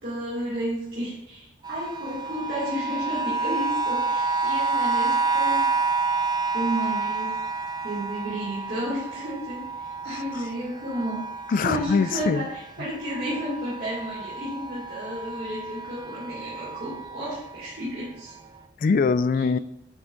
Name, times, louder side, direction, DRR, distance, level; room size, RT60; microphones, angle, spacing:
voice 1, 0.0-5.7 6.5-7.3 7.8-11.2 11.6-18.3, equal, 60° right, -8 dB, 2.5 m, -32 dB
sound 1, 1.6-12.7 13.0-17.6 18.3-18.4, right 4 dB, 25° right, 0.4 m, -29 dB
voice 2, 10.1-10.4 11.5-12.5 18.8-19.6, left 5 dB, 50° left, 15 dB, 0.3 m, -23 dB
9.4 x 6.0 x 2.7 m, 0.85 s
head